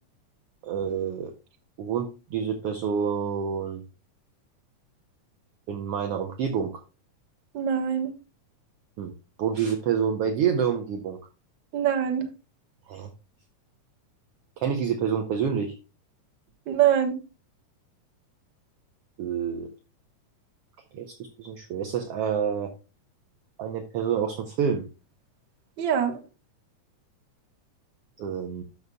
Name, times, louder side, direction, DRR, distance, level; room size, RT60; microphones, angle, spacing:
voice 1, 0.6-1.3 1.8-3.8 5.7-6.8 9.0-9.1 9.4-11.2 12.9-13.1 14.6-15.8 19.2-19.7 20.9-22.7 23.6-24.8 28.2-28.6, right 7 dB, 70° right, 1.4 m, -28 dB
voice 2, 7.5-8.1 11.7-12.3 16.7-17.1 25.8-26.2, right 9 dB, 55° right, 1.4 m, -23 dB
13.0 x 6.9 x 2.3 m
omnidirectional pair, 3.7 m